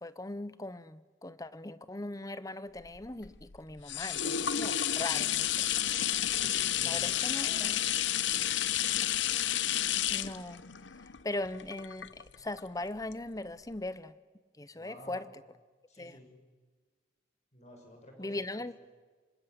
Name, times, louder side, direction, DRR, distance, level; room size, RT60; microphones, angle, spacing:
voice 1, 0.0-5.7 6.8-7.8 10.1-10.6 11.2-14.1 14.6-15.3 16.0-16.2 18.2-18.7, left 2 dB, 20° left, 15 dB, 0.8 m, -39 dB
sound 1, 2.8-12.6 13.1-13.2, left 11 dB, 65° left, 0.8 m, -31 dB
voice 2, 6.2-7.7 14.7-15.3 15.9-16.3 17.5-18.7, left 1 dB, 35° left, 2 dB, 7.1 m, -51 dB
26.0 x 25.0 x 8.1 m, 1.5 s
head